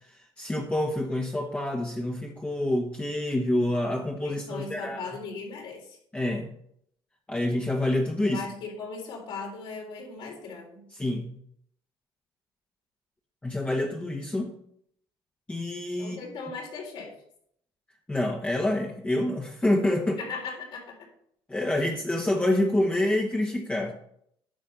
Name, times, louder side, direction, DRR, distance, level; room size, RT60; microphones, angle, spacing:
voice 1, 0.1-5.2 6.1-6.5 7.3-8.4 10.9-11.4 13.4-14.5 15.5-16.2 18.1-20.2 21.5-23.9, left 1 dB, 15° left, 0 dB, 1.2 m, -27 dB
voice 2, 4.2-6.0 8.2-10.8 16.0-17.1 20.2-21.1 21.8-21.9, left 4 dB, 70° left, -1 dB, 4.0 m, -38 dB
10.5 x 6.1 x 5.4 m, 0.69 s
cardioid pair, 115°, 9 cm